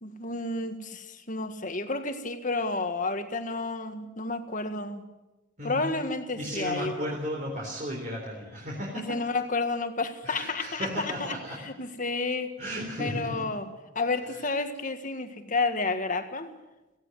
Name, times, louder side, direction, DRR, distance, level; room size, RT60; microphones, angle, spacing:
voice 1, 0.0-5.0 5.6-7.1 8.9-12.5 13.0-13.7 13.9-16.5, left 3 dB, 40° left, 7 dB, 1.8 m, -31 dB
voice 2, 5.6-5.9 6.4-9.2 10.2-11.6 12.6-13.4, equal, 40° right, -2 dB, 3.9 m, -34 dB
18.0 x 16.0 x 9.3 m, 1.1 s
head